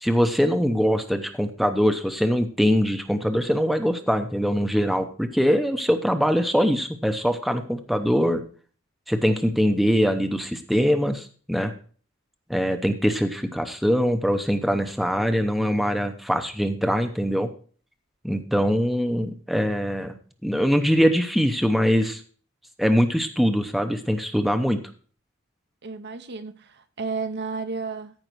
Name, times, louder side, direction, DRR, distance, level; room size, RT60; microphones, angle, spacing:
voice 1, 0.0-8.4 9.1-11.7 12.5-17.5 18.2-20.2 20.4-22.2 22.8-24.8, equal, ahead, 0.7 m, -22 dB
voice 2, 25.8-28.3, right 4 dB, 50° right, 0.7 m, -32 dB
14.0 x 5.3 x 4.5 m
head